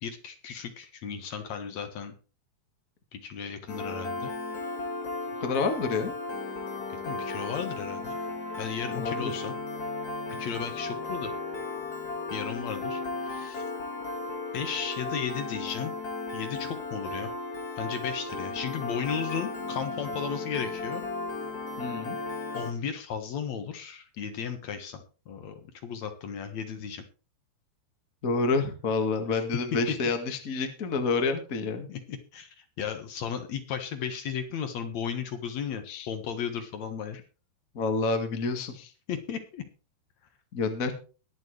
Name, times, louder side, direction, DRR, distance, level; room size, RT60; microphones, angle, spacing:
voice 1, 0.0-2.1 3.1-4.3 6.9-8.2 8.5-9.5 10.4-11.3 12.3-13.7 14.5-15.9 16.3-17.3 17.8-21.0 22.5-27.0 31.9-37.2 39.1-39.6, left 7 dB, 60° left, 7 dB, 2.0 m, -35 dB
Piano, 3.7-22.7, left 3 dB, 40° left, 1.4 m, -35 dB
voice 2, 5.4-6.1 8.9-9.4 21.8-22.2 28.2-31.9 35.9-36.1 37.7-38.9 40.5-40.9, left 4 dB, 90° left, 6 dB, 0.7 m, -28 dB
22.0 x 7.5 x 3.3 m, 0.35 s
omnidirectional pair, 4.9 m